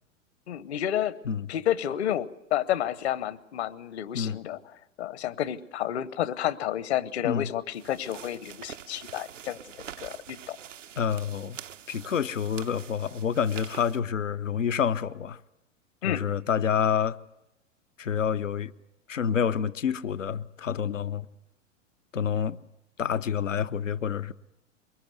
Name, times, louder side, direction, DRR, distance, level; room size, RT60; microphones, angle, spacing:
voice 1, 0.5-1.1 1.5-4.6 5.0-9.6 10.0-10.6 16.0-16.3, left 11 dB, 55° left, 1.1 m, -30 dB
sound 1, 7.7-14.0, right 9 dB, 75° right, 0.9 m, -45 dB
voice 2, 11.0-11.6 11.9-15.4 16.0-17.2 18.0-18.7 19.1-21.3 22.1-22.6 23.0-24.3, left 7 dB, 75° left, 0.9 m, -28 dB
23.5 x 21.5 x 8.1 m
figure-of-eight pair, 100°, 38 cm